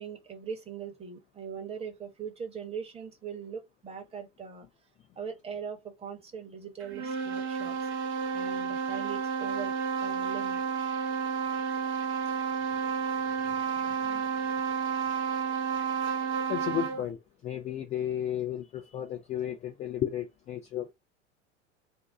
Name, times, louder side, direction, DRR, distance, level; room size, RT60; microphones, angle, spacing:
voice 1, 0.0-4.7 5.2-7.8 8.3-9.8 10.0-10.6, right 7 dB, 15° right, 1.0 m, -40 dB
sound 1, 6.8-17.1, right 6 dB, 30° right, 0.7 m, -31 dB
voice 2, 13.5-14.2 16.5-20.9, left 10 dB, 20° left, 0.4 m, -34 dB
2.6 x 2.2 x 3.6 m
figure-of-eight pair, 85°, 36 cm